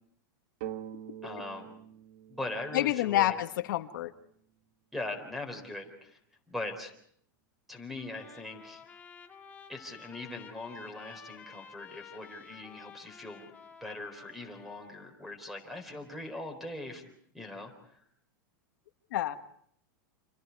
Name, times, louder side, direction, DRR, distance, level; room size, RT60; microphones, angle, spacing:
sound 1, 0.6-4.3, right 11 dB, 55° right, 1.4 m, -45 dB
voice 1, 1.2-1.8 2.3-3.3 4.9-6.2 6.5-6.9 7.7-8.8 9.7-13.5 13.8-17.1 17.3-17.9, left 2 dB, ahead, 7 dB, 4.1 m, -41 dB
voice 2, 2.7-4.1 19.1-19.4, left 14 dB, 70° left, 9 dB, 1.5 m, -28 dB
Trumpet, 8.0-15.1, left 6 dB, 15° left, 2.3 m, -52 dB
29.0 x 28.0 x 4.8 m, 0.67 s
supercardioid pair, 155°, 11 cm